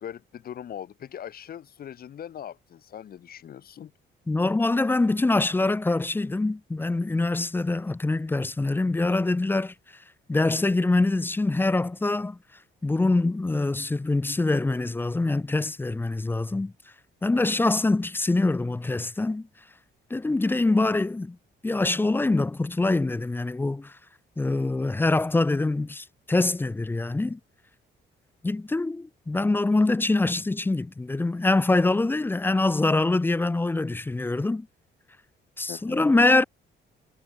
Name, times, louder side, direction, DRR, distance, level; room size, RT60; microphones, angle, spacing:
voice 1, 0.0-3.9 35.7-36.0, left 9 dB, 50° left, 0.7 m, -40 dB
voice 2, 4.3-9.7 10.3-12.4 12.8-16.7 17.2-19.5 20.1-21.4 21.6-23.9 24.4-27.4 28.4-34.7 35.6-36.4, left 2 dB, 10° left, 0.4 m, -24 dB
cardioid pair, 90°, 20 cm